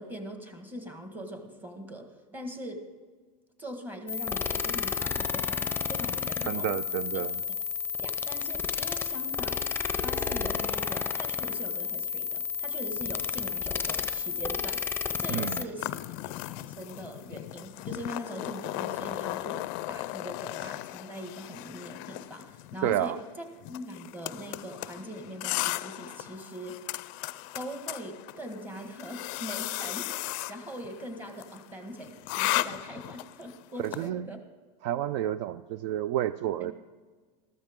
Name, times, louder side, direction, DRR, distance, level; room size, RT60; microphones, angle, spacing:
voice 1, 0.0-2.9 3.6-6.8 7.1-7.2 8.0-9.6 9.9-14.8 15.2-15.9 16.2-26.9 27.5-30.1 30.5-34.4 36.6-36.7, equal, 10° right, 5 dB, 1.5 m, -42 dB
sound 1, 4.1-15.6, left 6 dB, 10° left, 0.6 m, -31 dB
voice 2, 6.4-7.3 15.3-15.6 22.8-23.2 33.8-34.3 34.8-36.7, right 12 dB, 60° right, 16 dB, 0.4 m, -30 dB
sound 2, 15.8-34.1, left 18 dB, 50° left, 0.4 m, -36 dB
13.5 x 13.0 x 3.6 m, 1.5 s
supercardioid pair, 130°, 18 cm